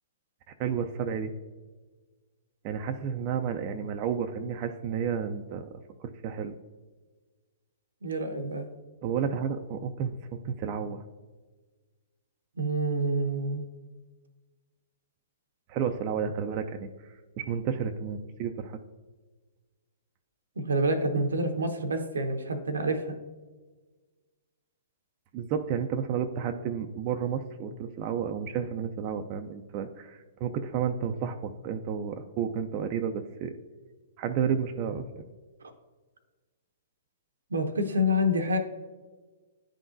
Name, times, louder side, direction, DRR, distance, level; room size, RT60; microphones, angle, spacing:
voice 1, 0.6-1.3 2.6-5.7 6.2-6.5 9.0-11.0 15.7-16.9 17.4-18.8 25.3-33.5 34.2-35.2, right 7 dB, 40° right, 5 dB, 0.4 m, -31 dB
voice 2, 8.0-8.7 12.6-13.7 20.6-23.2 37.5-38.6, equal, 85° right, 6 dB, 0.8 m, -27 dB
10.5 x 3.8 x 2.6 m, 1.3 s
hypercardioid pair, 120°, 0 cm